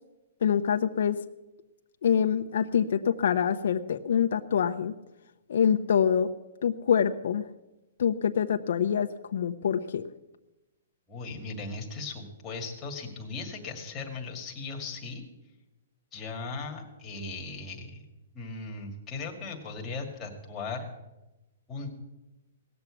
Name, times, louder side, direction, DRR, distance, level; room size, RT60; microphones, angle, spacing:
voice 1, 0.4-1.2 2.0-4.9 5.5-6.3 6.6-7.4 8.0-10.0, left 8 dB, 65° left, 6 dB, 0.7 m, -25 dB
voice 2, 11.1-15.2 16.1-18.0 18.3-20.9 21.7-21.9, left 3 dB, 15° left, 1 dB, 1.9 m, -38 dB
17.5 x 7.0 x 8.3 m, 1.0 s
hypercardioid pair, 165°, 0 cm